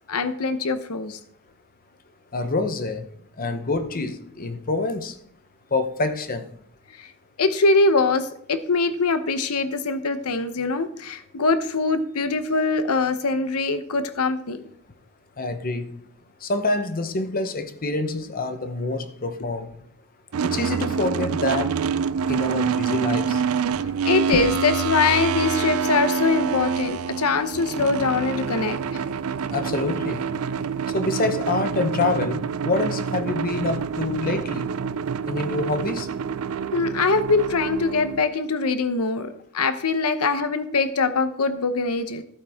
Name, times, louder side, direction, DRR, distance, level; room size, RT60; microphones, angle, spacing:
voice 1, 0.1-1.2 7.0-7.1 7.4-14.6 24.0-29.0 36.7-42.2, left 3 dB, 80° left, 0.8 m, -23 dB
voice 2, 2.3-3.0 3.4-5.1 5.7-6.4 15.4-15.9 16.4-19.7 20.4-21.7 22.3-23.4 29.5-30.2 30.9-34.7 35.3-36.1, left 2 dB, 40° left, 0.9 m, -26 dB
sound 1, 20.3-38.2, right 6 dB, 70° right, 0.4 m, -27 dB
14.5 x 8.8 x 3.6 m
head